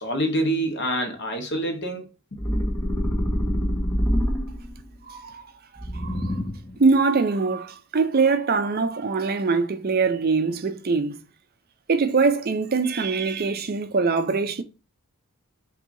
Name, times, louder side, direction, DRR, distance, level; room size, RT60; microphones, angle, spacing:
voice 1, 0.0-2.1, right 1 dB, 50° left, 1.1 m, -26 dB
sound 1, 2.4-4.9 5.8-6.8, equal, 15° left, 1.1 m, -25 dB
voice 2, 5.1-5.5 5.9-6.4 6.8-11.2 11.9-14.6, right 4 dB, 40° right, 0.5 m, -23 dB
5.9 x 2.7 x 2.6 m
head